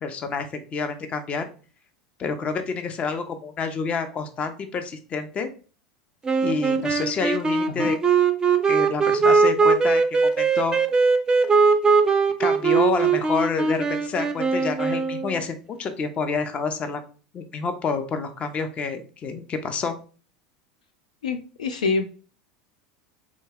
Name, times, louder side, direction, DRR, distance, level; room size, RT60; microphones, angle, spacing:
voice 1, 0.0-1.5 2.2-5.5 6.4-8.0 8.7-10.8 12.4-17.0 17.3-20.0, left 4 dB, 35° left, 8 dB, 0.6 m, -28 dB
sound 1, 6.2-15.4, right 5 dB, 20° right, 0.4 m, -20 dB
voice 2, 21.2-22.1, left 4 dB, 80° left, 7 dB, 0.3 m, -25 dB
3.5 x 2.2 x 3.4 m, 0.37 s
hypercardioid pair, 80°, 4 cm